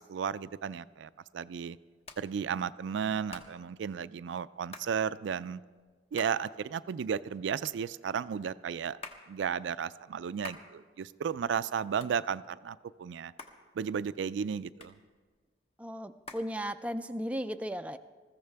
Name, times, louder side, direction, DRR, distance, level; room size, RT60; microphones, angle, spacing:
voice 1, 0.0-1.8 2.2-5.6 6.1-9.0 9.3-13.3 13.8-15.0, right 7 dB, 80° right, 15 dB, 0.4 m, -34 dB
Hands, 0.6-17.2, left 3 dB, 35° left, 1.1 m, -53 dB
voice 2, 15.8-18.0, equal, 5° right, 8 dB, 0.3 m, -36 dB
20.5 x 14.5 x 3.5 m, 1.5 s
head